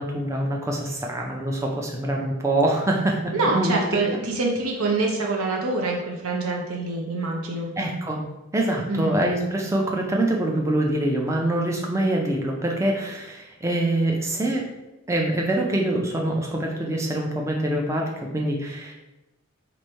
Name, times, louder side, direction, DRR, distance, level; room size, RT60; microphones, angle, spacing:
voice 1, 0.0-3.7 7.8-8.2 8.5-14.7 15.1-18.9, right 1 dB, 15° right, 0 dB, 0.4 m, -25 dB
voice 2, 3.3-7.7 8.9-9.2, right 3 dB, 75° right, 0 dB, 0.7 m, -25 dB
3.1 x 2.6 x 4.3 m, 1.0 s
head